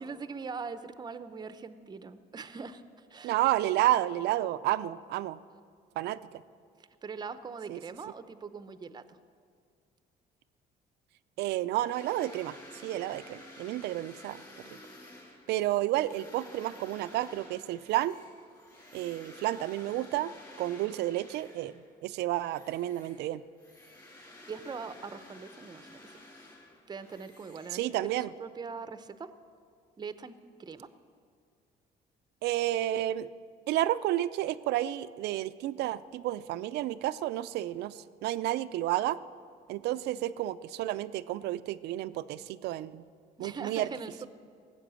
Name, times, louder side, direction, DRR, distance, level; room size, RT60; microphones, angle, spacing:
voice 1, 0.0-3.3 6.8-9.2 24.5-26.1 26.9-29.3 30.0-30.9 43.4-44.3, right 5 dB, 25° right, 12 dB, 0.7 m, -42 dB
voice 2, 3.2-5.4 6.0-6.4 7.7-7.8 11.4-14.8 15.5-18.2 18.9-20.3 20.6-23.4 27.7-28.3 32.4-33.3 33.7-39.2 39.7-43.0 43.4-43.9, right 14 dB, 80° right, 14 dB, 0.5 m, -31 dB
sound 1, 11.9-21.9 22.3-28.3, left 1 dB, 20° left, 3.1 m, -52 dB
17.5 x 7.9 x 7.6 m, 2.2 s
cardioid pair, 110°, 17 cm